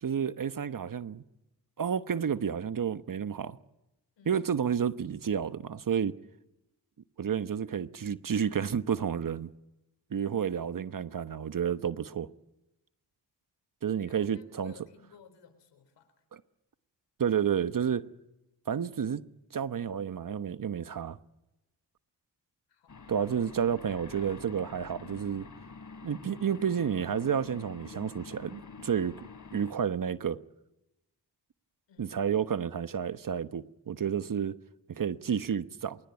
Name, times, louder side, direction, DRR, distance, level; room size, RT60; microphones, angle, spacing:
voice 1, 0.0-1.2 1.8-3.6 4.3-6.2 7.2-9.5 10.1-12.3 13.8-14.7 17.2-18.0 18.7-19.2 19.5-21.2 23.1-25.5 26.0-29.2 29.5-30.4 32.0-34.5 34.9-36.0, right 7 dB, 50° right, 1.1 m, -30 dB
voice 2, 4.2-4.5 13.9-16.1 17.8-18.0 22.7-23.0 31.9-32.4, left 6 dB, 80° left, 4.5 m, -57 dB
sound 1, 22.9-29.7, left 5 dB, 45° left, 3.5 m, -47 dB
25.0 x 23.0 x 9.7 m
supercardioid pair, 50°, 42 cm